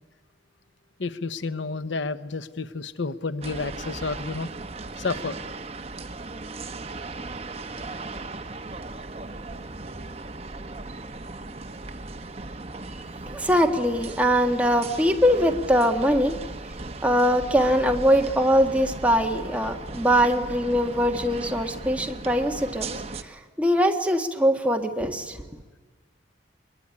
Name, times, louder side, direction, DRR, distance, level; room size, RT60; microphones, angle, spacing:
voice 1, 1.0-4.5 5.0-5.4, left 3 dB, 70° left, 13 dB, 0.9 m, -30 dB
sound 1, 3.4-23.2, right 3 dB, 30° right, 1.1 m, -37 dB
voice 2, 13.3-16.4 17.0-22.9 23.2-25.4, equal, 5° right, 3 dB, 1.6 m, -22 dB
23.0 x 22.5 x 9.9 m, 1.3 s
head